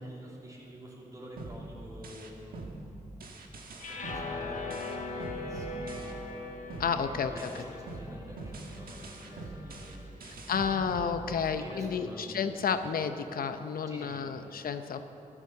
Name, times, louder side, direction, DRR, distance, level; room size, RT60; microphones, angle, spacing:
voice 1, 0.0-3.0 3.9-6.2 6.9-10.6 11.3-12.9 13.9-14.3, equal, 25° right, -3 dB, 3.0 m, -48 dB
sound 1, 1.4-6.4 6.7-11.7, right 2 dB, 85° right, 1.5 m, -44 dB
sound 2, 3.8-10.1, left 3 dB, 60° left, 1.3 m, -41 dB
voice 2, 6.8-7.5 10.2-15.1, left 6 dB, 85° left, 8 dB, 0.7 m, -31 dB
14.0 x 12.5 x 6.8 m, 2.9 s
wide cardioid pair, 155°, 15 cm